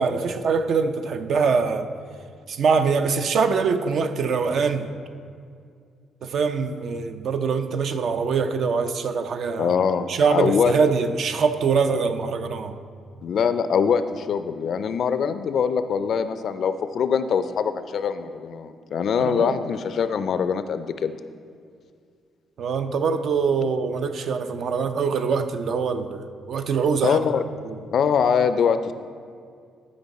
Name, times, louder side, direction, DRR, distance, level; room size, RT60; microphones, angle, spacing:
voice 1, 0.0-1.9 2.5-4.9 6.2-9.7 10.1-12.8 19.2-19.6 22.6-27.2 27.6-27.8, right 5 dB, 65° right, 8 dB, 0.5 m, -23 dB
voice 2, 9.6-10.7 13.2-21.2 27.0-27.4 27.9-28.9, left 7 dB, 60° left, 11 dB, 0.4 m, -23 dB
12.0 x 5.2 x 4.1 m, 2.2 s
cardioid pair, 90°, 0 cm